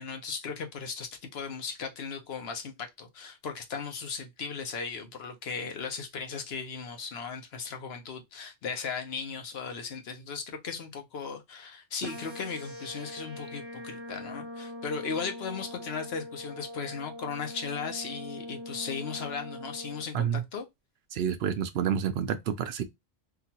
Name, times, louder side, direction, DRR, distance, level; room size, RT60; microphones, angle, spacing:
voice 1, 0.0-20.6, left 5 dB, 70° left, 1.0 m, -37 dB
sound 1, 12.0-20.0, left 1 dB, 15° right, 0.6 m, -42 dB
voice 2, 21.1-22.8, right 8 dB, 70° right, 0.8 m, -29 dB
3.8 x 2.4 x 2.8 m
omnidirectional pair, 1.1 m